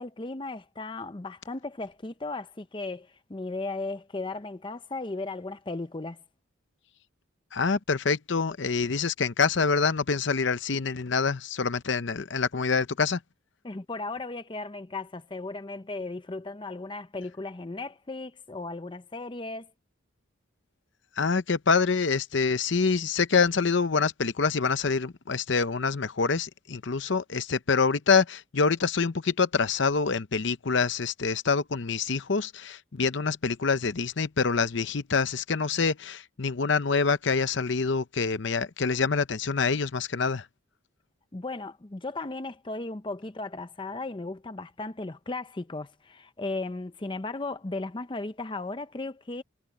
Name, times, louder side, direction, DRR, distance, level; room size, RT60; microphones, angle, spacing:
voice 1, 0.0-6.2 13.6-19.7 41.3-49.4, left 2 dB, 25° left, 0.6 m, -36 dB
voice 2, 7.5-13.2 21.2-40.5, left 5 dB, 60° left, 0.7 m, -26 dB
head